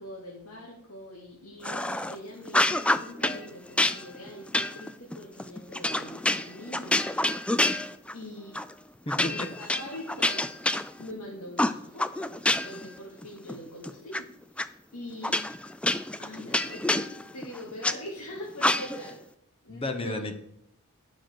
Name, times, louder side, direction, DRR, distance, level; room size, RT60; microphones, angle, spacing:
voice 1, 0.0-7.0 8.1-8.5 9.2-10.4 11.0-12.3 12.6-14.3 14.9-15.5 16.2-19.2 19.6-20.2, left 1 dB, 75° left, -4 dB, 2.7 m, -43 dB
sound 1, 1.6-2.2 2.5-3.4 3.8-8.2 8.5-8.7 9.1-11.2 11.6-12.9 13.2-14.2 14.6-14.7 15.2-18.0 18.6-19.1, left 1 dB, 5° left, 0.3 m, -27 dB
voice 2, 9.1-9.5 19.7-20.3, left 2 dB, 25° left, 7 dB, 1.0 m, -32 dB
9.9 x 6.1 x 6.6 m, 0.80 s
head